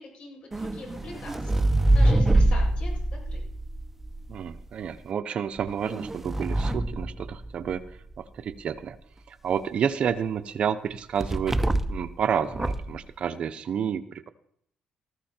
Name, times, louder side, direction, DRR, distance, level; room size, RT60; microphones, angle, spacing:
voice 1, 0.0-3.4, left 3 dB, 50° left, -1 dB, 7.7 m, -43 dB
sound 1, 0.5-4.6 5.6-7.9 11.2-12.1 12.5-13.0, right 1 dB, 10° right, 0.8 m, -25 dB
voice 2, 4.3-7.8 8.2-9.0 9.3-11.6 11.9-14.3, right 8 dB, 50° right, 11 dB, 0.9 m, -30 dB
19.5 x 14.5 x 4.5 m, 0.67 s
cardioid pair, 140°, 2 cm